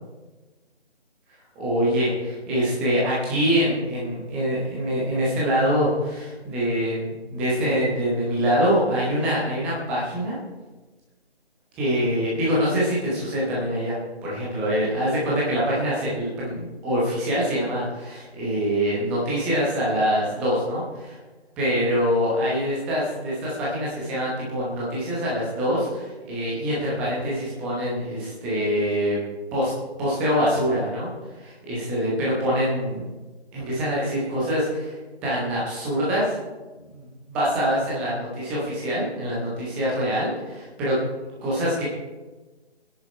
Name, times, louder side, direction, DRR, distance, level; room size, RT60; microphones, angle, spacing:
voice 1, 1.6-10.4 11.8-14.0 14.2-21.1 21.6-29.2 29.5-29.7 30.0-31.1 31.4-33.1 33.5-34.9 35.2-36.3 36.8-41.0 41.4-41.8, equal, 5° right, -6 dB, 1.0 m, -24 dB
29.0 x 10.0 x 3.3 m, 1.2 s
figure-of-eight pair, 150°, 32 cm